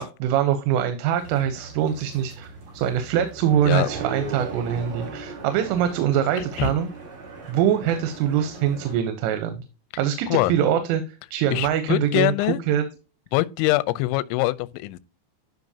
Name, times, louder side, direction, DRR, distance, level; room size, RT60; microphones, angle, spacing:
voice 1, 0.0-6.9 7.5-9.7 10.0-12.3 12.7-12.8, right 10 dB, 85° right, 3.5 m, -23 dB
sound 1, 1.2-9.0, right 3 dB, 50° right, 6.2 m, -38 dB
voice 2, 6.4-6.8 10.3-10.5 11.5-12.6 13.3-15.0, left 18 dB, 85° left, 2.9 m, -23 dB
12.0 x 5.2 x 2.7 m
omnidirectional pair, 5.6 m